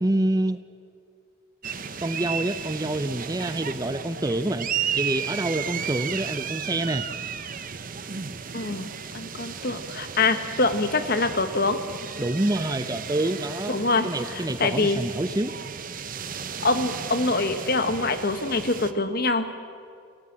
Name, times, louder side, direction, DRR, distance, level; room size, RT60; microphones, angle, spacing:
voice 1, 0.0-0.6 2.0-4.7 5.0-7.1 12.2-13.8 14.0-15.6, right 1 dB, 20° right, 12 dB, 0.5 m, -27 dB
sound 1, 1.6-18.9, right 7 dB, 40° right, 0.9 m, -34 dB
voice 2, 8.5-8.9 9.1-11.8 13.7-15.0 16.6-19.5, left 3 dB, 50° left, 9 dB, 1.4 m, -24 dB
27.0 x 16.5 x 7.5 m, 2.3 s
head